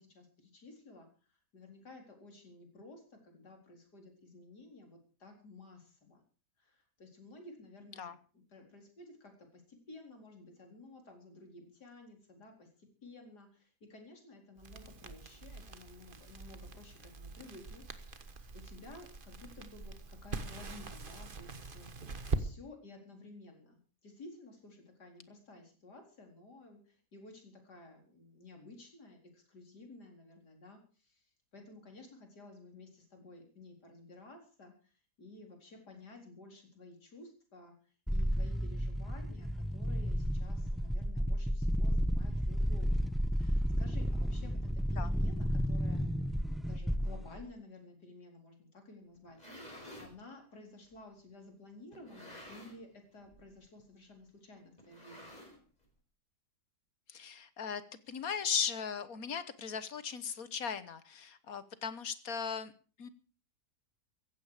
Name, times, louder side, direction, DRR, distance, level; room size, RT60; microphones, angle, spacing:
voice 1, 0.0-6.2 6.6-8.1 8.5-21.9 22.4-43.0 43.3-46.0 46.6-55.4, left 2 dB, 80° left, 3 dB, 4.8 m, -54 dB
Crackle, 14.6-22.4, right 3 dB, 35° right, 1.4 m, -43 dB
sound 1, 38.1-47.4, equal, ahead, 0.4 m, -32 dB
sound 2, 49.1-50.2 50.9-51.0 51.9-52.9 53.2-53.5 53.8-53.9 54.8-55.9, equal, 25° left, 5.5 m, -51 dB
voice 2, 57.1-57.8 58.1-62.7 63.0-63.1, left 7 dB, 60° left, 14 dB, 1.6 m, -37 dB
16.0 x 15.0 x 5.0 m, 0.39 s
omnidirectional pair, 1.7 m